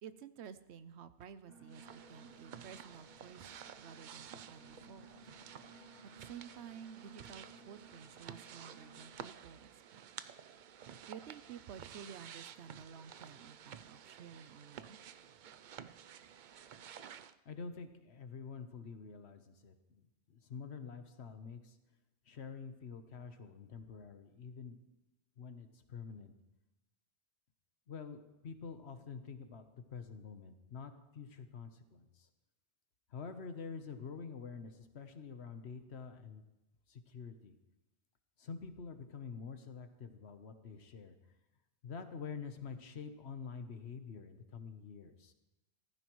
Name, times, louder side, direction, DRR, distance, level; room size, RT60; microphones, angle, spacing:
voice 1, 0.0-3.4 3.8-5.1 6.0-9.7 11.1-15.0, right 8 dB, 75° right, 13 dB, 0.9 m, -52 dB
sound 1, 1.5-9.1, right 2 dB, 55° left, 1.6 m, -59 dB
sound 2, 1.7-17.3, right 8 dB, 55° right, 0.6 m, -52 dB
voice 2, 17.4-21.8 22.3-24.8 25.4-26.3 27.9-29.6 29.9-32.3 33.1-36.4 36.9-37.6 38.4-41.2 41.8-45.3, left 5 dB, 70° left, 8 dB, 1.3 m, -47 dB
15.0 x 14.5 x 3.1 m, 1.0 s
omnidirectional pair, 1.1 m